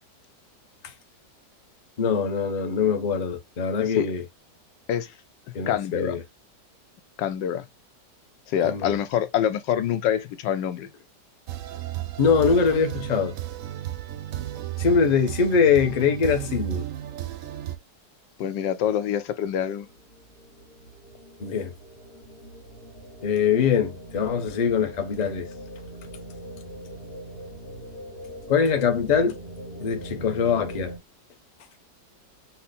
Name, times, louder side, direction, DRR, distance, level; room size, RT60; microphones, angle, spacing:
voice 1, 2.0-4.2 5.5-6.2 8.6-9.0 12.2-13.3 14.8-16.8 21.4-21.7 23.2-25.5 28.5-29.3 29.8-30.9, left 6 dB, 40° left, 0.6 m, -23 dB
voice 2, 5.7-6.2 7.2-7.7 8.5-10.9 18.4-19.9, left 10 dB, 90° left, 1.3 m, -26 dB
sound 1, 11.5-17.8, right 14 dB, 70° right, 0.8 m, -33 dB
sound 2, 19.6-31.0, right 1 dB, 55° left, 1.8 m, -41 dB
5.7 x 2.1 x 4.1 m
omnidirectional pair, 1.9 m